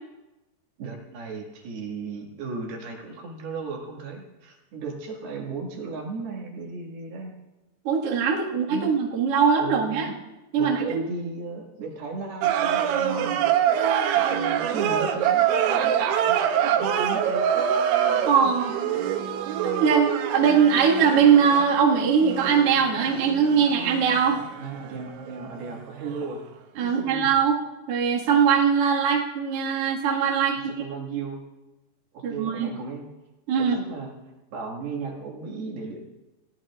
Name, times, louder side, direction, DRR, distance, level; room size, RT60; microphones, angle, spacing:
voice 1, 0.8-7.3 8.7-8.9 9.6-10.2 10.5-13.5 14.1-16.4 16.6-17.5 24.6-26.4 26.8-27.3 30.7-31.4 32.1-33.1 33.6-34.1 34.5-36.1, right 4 dB, 65° right, 0 dB, 3.7 m, -35 dB
voice 2, 7.8-10.1 10.5-11.0 18.2-18.8 19.6-24.4 26.8-27.6 27.9-30.6 32.2-32.7 33.5-33.8, right 6 dB, 50° right, -3 dB, 2.0 m, -21 dB
sound 1, 12.4-25.8 26.1-26.2, right 9 dB, 90° right, 3.4 m, -25 dB
29.5 x 16.0 x 2.5 m, 1.0 s
omnidirectional pair, 5.1 m